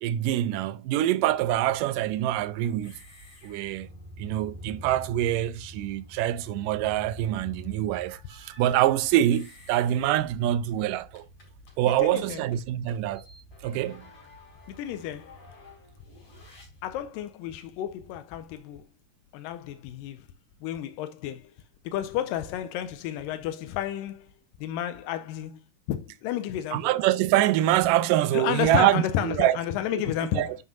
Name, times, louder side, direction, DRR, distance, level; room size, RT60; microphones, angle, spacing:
voice 1, 0.0-3.0 3.4-3.9 4.2-11.2 11.8-13.2 13.6-14.1 26.7-29.6 30.4-30.6, right 13 dB, 85° right, 2.2 m, -25 dB
sound 1, 1.2-17.1, equal, 45° left, 5.3 m, -48 dB
voice 2, 12.0-12.4 14.7-15.4 16.8-18.8 19.3-20.3 20.6-21.5 21.8-24.3 24.6-25.6 25.9-26.9 28.3-30.6, left 11 dB, 85° left, 2.3 m, -31 dB
10.5 x 6.2 x 2.5 m
omnidirectional pair, 3.9 m